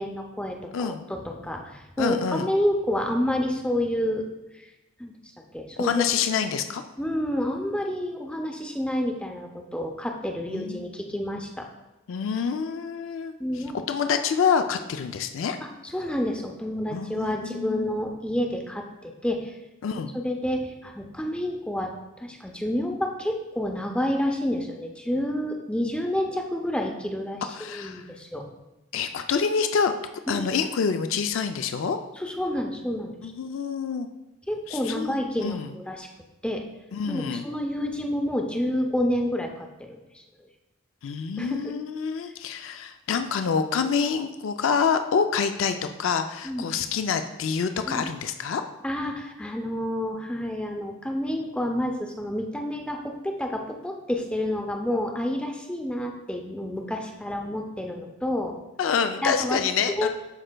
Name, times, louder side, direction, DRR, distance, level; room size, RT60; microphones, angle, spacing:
voice 1, 0.0-4.2 4.6-4.7 5.0-5.1 5.5-6.1 7.0-11.7 13.4-13.8 15.8-19.5 19.9-21.9 22.2-28.4 30.3-30.5 32.2-33.3 34.5-36.1 36.4-36.6 37.1-39.7 40.1-40.2 41.4-41.7 46.4-46.7 47.9-48.1 48.8-58.6 59.2-59.6 59.9-60.1, left 1 dB, 5° left, 2 dB, 0.5 m, -29 dB
voice 2, 2.0-2.5 5.8-6.8 10.5-10.9 12.1-13.3 13.9-15.6 16.9-17.9 19.8-20.1 27.5-28.1 28.9-29.9 30.3-32.0 33.2-34.1 34.7-35.7 36.9-37.5 41.0-48.6 58.8-60.1, left 6 dB, 65° left, 8 dB, 0.4 m, -27 dB
11.5 x 4.4 x 2.2 m, 0.99 s
head